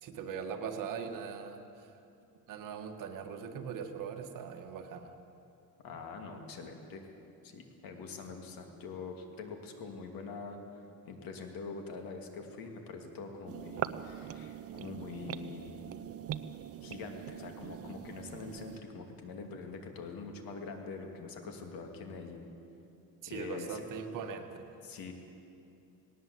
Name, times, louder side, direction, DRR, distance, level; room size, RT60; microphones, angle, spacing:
voice 1, 0.0-1.9 2.5-5.2 23.2-24.8, right 6 dB, 65° right, 4 dB, 1.8 m, -41 dB
voice 2, 5.8-7.0 7.4-15.8 16.8-22.4 23.3-23.9 24.8-25.1, left 4 dB, 85° left, 4 dB, 2.6 m, -44 dB
sound 1, 13.5-18.8, right 10 dB, 45° right, 0.6 m, -42 dB
18.5 x 18.5 x 8.0 m, 2.8 s
cardioid pair, 160°, 34 cm